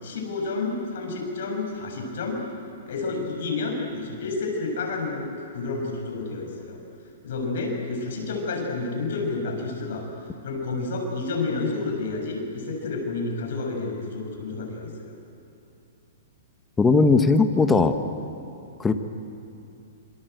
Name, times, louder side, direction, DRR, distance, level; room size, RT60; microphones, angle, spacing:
voice 1, 0.0-2.5 2.9-6.8 7.2-10.0 10.4-15.2, left 3 dB, 60° left, 2 dB, 6.9 m, -30 dB
voice 2, 16.8-17.9 18.8-19.0, left 4 dB, 10° left, 7 dB, 1.2 m, -18 dB
27.0 x 25.5 x 8.1 m, 2.8 s
hypercardioid pair, 165°, 0 cm